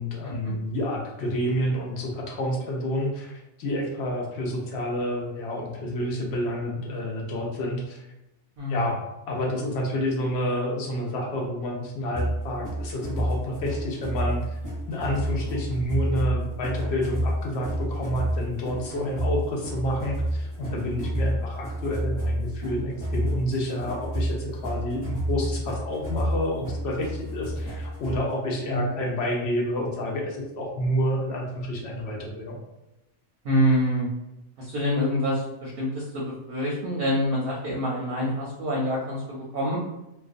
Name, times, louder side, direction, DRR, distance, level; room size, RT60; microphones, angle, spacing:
voice 1, 0.0-8.1 8.7-9.0 9.3-14.6 14.9-32.6, equal, 65° left, -1 dB, 0.8 m, -29 dB
sound 1, 12.1-28.3, equal, 20° left, 0.8 m, -30 dB
voice 2, 33.4-34.1 34.6-39.8, equal, 60° right, -3 dB, 0.7 m, -26 dB
2.3 x 2.2 x 2.4 m, 0.94 s
omnidirectional pair, 1.3 m